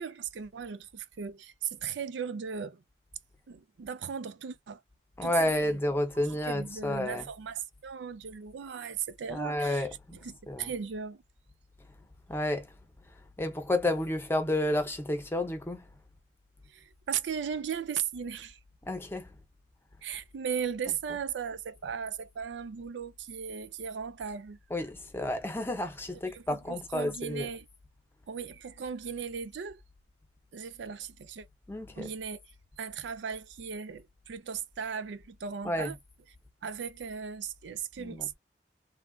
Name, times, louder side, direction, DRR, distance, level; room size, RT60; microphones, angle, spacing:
voice 1, 0.0-2.8 3.5-4.8 5.2-5.3 5.6-5.8 6.1-9.9 10.2-11.2 16.7-18.6 20.0-24.6 26.3-27.7 28.3-29.8 30.5-31.5 32.0-32.4 32.8-35.9 36.6-38.3, right 7 dB, 85° right, 0.4 m, -37 dB
voice 2, 5.2-7.3 9.3-10.2 10.5-10.7 12.3-12.7 13.4-15.8 18.9-19.3 24.7-27.5 31.7-32.1 35.6-35.9 38.0-38.3, left 1 dB, 15° left, 0.6 m, -31 dB
3.2 x 2.4 x 2.3 m
head